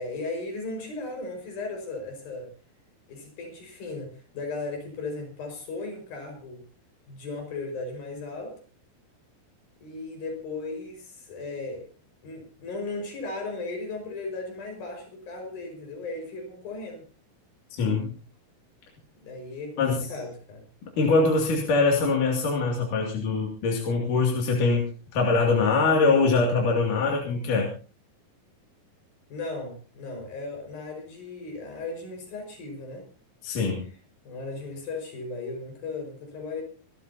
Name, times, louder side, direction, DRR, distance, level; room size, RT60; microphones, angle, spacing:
voice 1, 0.0-2.5 3.1-6.6 7.1-8.6 9.8-11.9 12.2-17.1 19.2-20.6 29.3-33.1 34.3-36.6, left 3 dB, 75° left, 2 dB, 7.0 m, -36 dB
voice 2, 17.8-18.1 19.8-20.1 21.0-24.8 25.1-27.7 33.4-33.8, left 3 dB, 60° left, -1 dB, 4.0 m, -23 dB
26.5 x 13.0 x 2.8 m, 0.36 s
omnidirectional pair, 4.2 m